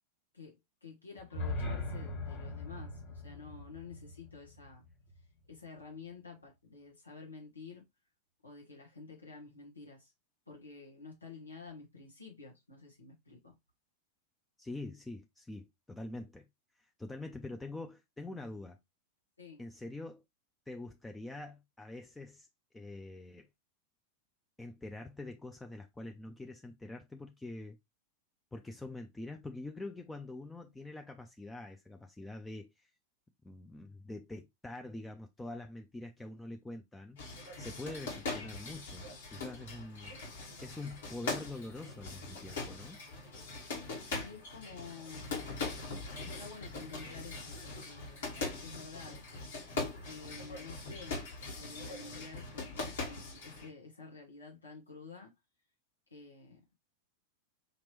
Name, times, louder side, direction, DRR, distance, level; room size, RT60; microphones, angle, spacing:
voice 1, 0.3-4.8 5.5-7.8 8.4-10.1 10.5-13.5 19.4-19.6 44.2-45.4 46.2-49.3 50.1-55.3 56.1-56.6, left 4 dB, 80° left, 1.5 m, -50 dB
sound 1, 1.2-5.2, left 2 dB, 40° left, 1.7 m, -40 dB
voice 2, 14.6-16.5 16.8-18.8 19.6-20.2 20.7-22.5 22.7-23.5 24.6-27.8 28.5-32.9 33.4-37.3 37.6-40.1 40.6-43.0, left 2 dB, 10° left, 0.5 m, -45 dB
sound 2, 37.2-53.7, left 3 dB, 60° left, 1.8 m, -41 dB
5.0 x 3.0 x 3.1 m
figure-of-eight pair, 90°, 0 cm